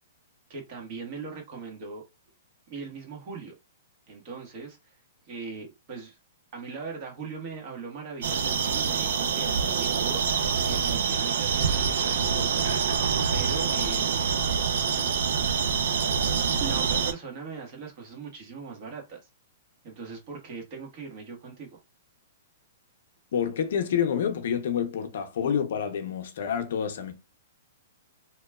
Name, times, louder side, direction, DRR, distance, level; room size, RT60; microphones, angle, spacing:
voice 1, 0.5-2.0 2.7-3.5 4.1-5.0 5.2-6.2 6.5-10.2 10.6-12.7 13.3-14.5 16.6-19.2 19.8-21.8, right 5 dB, 45° right, 1.2 m, -40 dB
sound 1, 8.2-17.1, right 6 dB, 75° right, 0.5 m, -26 dB
voice 2, 23.3-27.1, left 8 dB, 65° left, 0.6 m, -28 dB
2.9 x 2.2 x 2.3 m
hypercardioid pair, 140°, 0 cm